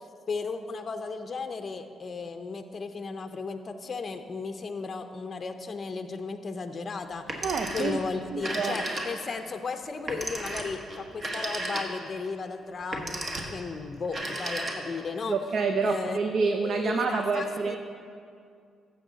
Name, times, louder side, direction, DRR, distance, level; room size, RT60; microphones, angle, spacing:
voice 1, 0.3-7.4 7.7-15.4 15.8-17.8, left 4 dB, 40° left, 6 dB, 0.5 m, -35 dB
Telephone, 7.2-8.0 8.3-9.4 10.1-12.2 12.8-13.6 14.0-15.1, right 1 dB, 35° right, 1.3 m, -34 dB
voice 2, 7.4-8.0 8.3-8.8 15.3-17.8, right 4 dB, 60° right, 5 dB, 0.5 m, -28 dB
14.0 x 6.9 x 3.9 m, 2.3 s
cardioid pair, 90°, 0 cm